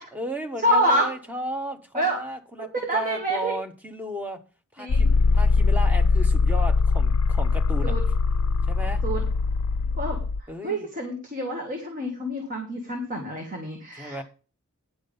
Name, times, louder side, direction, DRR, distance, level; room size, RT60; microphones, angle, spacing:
voice 1, 0.1-4.4 4.7-7.9 8.6-9.0 10.5-10.9 14.0-14.2, equal, 5° right, 6 dB, 1.2 m, -34 dB
voice 2, 0.6-1.1 1.9-2.2 2.6-3.5 4.8-5.1 7.8-8.0 9.0-9.2 10.0-14.2, right 1 dB, 40° right, 2 dB, 2.1 m, -27 dB
sound 1, 4.9-10.4, left 4 dB, 90° left, 0.5 m, -21 dB
10.5 x 6.3 x 5.4 m, 0.35 s
head